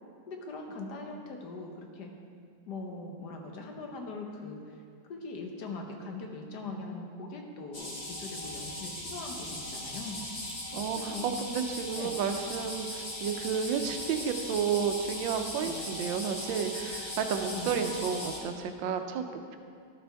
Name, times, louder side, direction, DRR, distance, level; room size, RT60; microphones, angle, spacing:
voice 1, 0.3-2.1 2.7-4.8 5.1-10.2 10.9-11.3 12.0-12.2 15.6-15.8 17.5-17.9, left 3 dB, 65° left, 2 dB, 1.4 m, -41 dB
sound 1, 7.7-18.4, left 1 dB, 25° left, 1.1 m, -39 dB
voice 2, 10.7-19.3, right 7 dB, 85° right, 6 dB, 1.4 m, -31 dB
12.0 x 6.7 x 3.4 m, 2.2 s
omnidirectional pair, 2.0 m